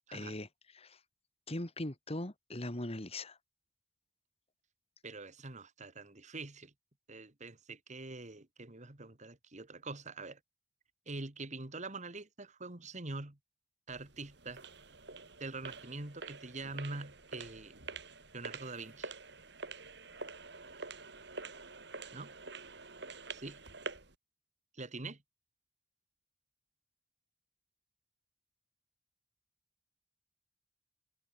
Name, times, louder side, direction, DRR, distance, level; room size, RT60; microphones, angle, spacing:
voice 1, 0.1-0.5 0.7-1.0 1.5-3.4, left 1 dB, 35° left, 2.4 m, -40 dB
voice 2, 5.0-6.7 7.1-10.4 11.1-13.4 13.9-14.6 15.4-17.8 18.3-19.1 22.1-22.3 23.3-23.6 24.7-25.2, right 3 dB, 40° right, 2.0 m, -44 dB
sound 1, 13.9-24.1, right 4 dB, 70° right, 7.8 m, -47 dB
head